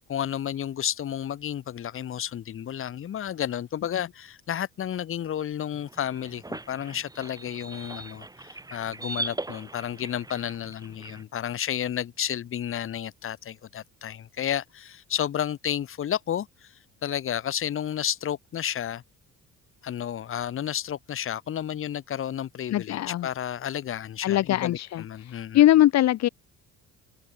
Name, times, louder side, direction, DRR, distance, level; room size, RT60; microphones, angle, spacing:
voice 1, 0.1-16.7 17.0-19.0 19.8-25.6, left 10 dB, 45° left, 1.9 m, -31 dB
sound 1, 5.7-11.2, right 2 dB, 10° right, 7.4 m, -39 dB
voice 2, 22.7-23.3 24.2-26.3, left 13 dB, 60° left, 1.5 m, -21 dB
cardioid pair, 135°, 30 cm